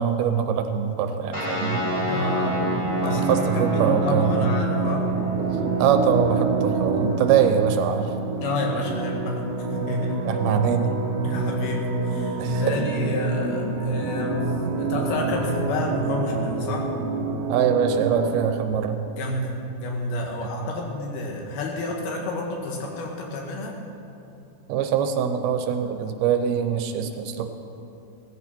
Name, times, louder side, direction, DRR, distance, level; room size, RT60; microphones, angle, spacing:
voice 1, 0.0-1.9 3.0-4.6 5.4-8.2 10.2-11.0 12.4-12.8 17.5-19.0 24.7-27.5, right 8 dB, 80° right, 7 dB, 2.7 m, -23 dB
sound 1, 1.3-12.2, right 3 dB, 10° left, 3.3 m, -30 dB
sound 2, 1.7-18.5, right 3 dB, 60° right, 2.5 m, -28 dB
voice 2, 2.1-2.6 3.0-5.1 8.4-9.4 9.7-10.2 11.2-16.9 19.1-23.8, left 2 dB, 75° left, 0 dB, 3.6 m, -30 dB
16.5 x 15.0 x 4.4 m, 2.9 s
omnidirectional pair, 4.5 m